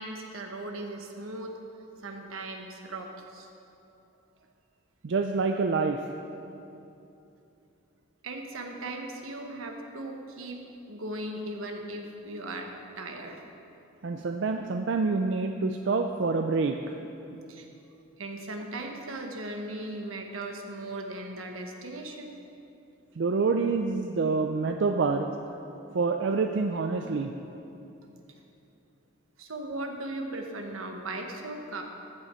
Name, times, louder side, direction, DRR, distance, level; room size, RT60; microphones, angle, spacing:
voice 1, 0.0-1.6 1.9-3.5 8.2-10.6 10.9-12.7 13.0-13.4 17.5-17.7 18.2-22.3 29.4-31.8, right 2 dB, 80° right, 3 dB, 1.2 m, -38 dB
voice 2, 5.0-6.0 14.0-16.9 23.2-25.3 25.9-27.3, right 4 dB, 60° right, 5 dB, 0.4 m, -27 dB
14.5 x 7.7 x 4.4 m, 2.8 s
head